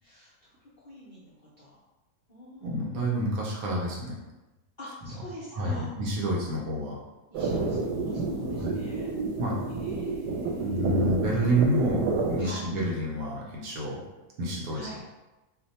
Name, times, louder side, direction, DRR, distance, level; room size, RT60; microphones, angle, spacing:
voice 1, 0.0-1.8 2.3-3.2 4.8-5.9 6.4-6.5 7.3-9.1 9.8-11.6 12.4-12.7 14.7-15.0, equal, 55° left, -10 dB, 0.5 m, -47 dB
voice 2, 2.6-4.1 5.5-7.0 8.6-8.9 9.4-9.6 10.6-14.0 14.4-15.1, right 1 dB, 70° right, -3 dB, 1.1 m, -29 dB
sound 1, 7.3-12.4, right 3 dB, 90° right, 1.2 m, -29 dB
2.8 x 2.2 x 4.0 m, 1.1 s
omnidirectional pair, 1.7 m